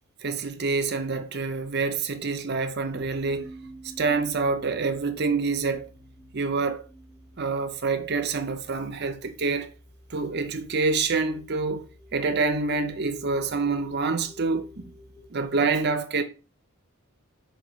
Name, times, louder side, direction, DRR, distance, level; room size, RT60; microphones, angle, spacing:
voice 1, 0.2-3.5 4.0-5.9 6.3-6.8 7.4-9.7 10.1-11.9 12.1-14.9 15.3-16.2, right 4 dB, 50° right, 0.7 m, -27 dB
sound 1, 2.9-15.2, right 1 dB, 30° left, 3.4 m, -50 dB
5.3 x 4.6 x 4.5 m
head